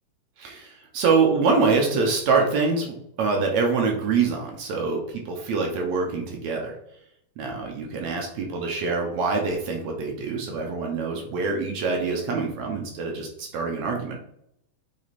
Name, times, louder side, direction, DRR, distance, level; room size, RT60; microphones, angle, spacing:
voice 1, 0.4-6.8 7.4-14.3, right 4 dB, 65° right, 1 dB, 1.9 m, -25 dB
7.6 x 4.2 x 4.1 m, 0.76 s
omnidirectional pair, 4.1 m